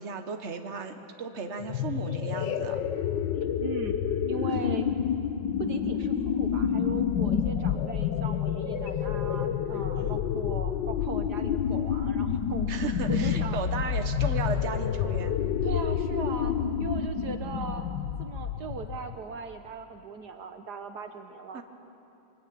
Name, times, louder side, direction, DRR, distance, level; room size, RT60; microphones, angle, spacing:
voice 1, 0.0-2.8 10.0-10.2 12.7-15.4 21.5-21.6, right 5 dB, 40° right, 6 dB, 1.6 m, -35 dB
sound 1, 1.6-19.2, left 8 dB, 80° left, 1.6 m, -29 dB
voice 2, 3.4-4.0 4.3-4.9 5.6-12.7 13.1-13.6 15.6-16.5 16.8-17.8 18.2-21.6, right 5 dB, 65° right, 7 dB, 1.6 m, -38 dB
27.5 x 23.0 x 8.6 m, 3.0 s
omnidirectional pair, 1.9 m